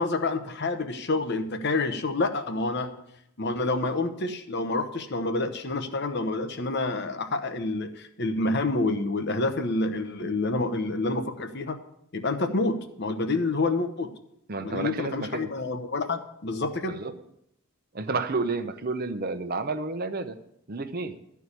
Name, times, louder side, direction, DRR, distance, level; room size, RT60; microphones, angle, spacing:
voice 1, 0.0-2.9 3.4-11.8 12.1-14.1 14.6-17.0, left 2 dB, 55° left, 8 dB, 1.0 m, -28 dB
voice 2, 14.5-15.5 16.9-17.1 17.9-20.4 20.7-21.1, right 3 dB, 45° right, 9 dB, 0.8 m, -30 dB
13.0 x 4.7 x 8.3 m, 0.75 s
head